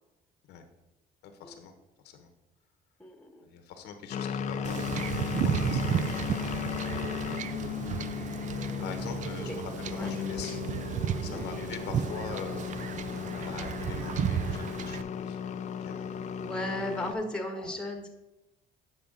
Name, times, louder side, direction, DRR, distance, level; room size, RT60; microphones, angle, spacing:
voice 1, 1.2-1.7 2.0-2.3 3.4-4.8 5.3-8.1 8.8-10.6 11.2-12.8 13.3-16.7 17.5-17.7, left 6 dB, 80° left, 6 dB, 1.0 m, -44 dB
voice 2, 3.0-3.5 8.8-9.6 9.9-10.1 11.1-11.4 16.4-18.1, left 1 dB, 5° left, 3 dB, 1.3 m, -36 dB
sound 1, 4.1-17.1, left 8 dB, 45° left, 0.5 m, -36 dB
Wind / Ocean / Boat Water vehicle, 4.6-15.0, right 9 dB, 45° right, 0.4 m, -33 dB
8.8 x 5.7 x 3.8 m, 0.98 s
cardioid pair, 110°, 17 cm